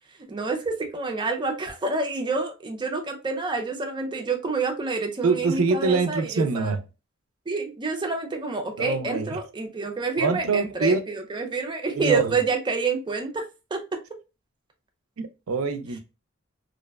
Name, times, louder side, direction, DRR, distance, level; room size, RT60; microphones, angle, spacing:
voice 1, 0.3-6.7 7.5-13.5 13.7-14.0, right 3 dB, 25° right, 0.5 m, -28 dB
voice 2, 5.2-6.8 8.8-9.4 10.2-11.0 12.0-12.3 15.2-16.0, right 4 dB, 85° right, 0.4 m, -24 dB
2.5 x 2.1 x 2.3 m
head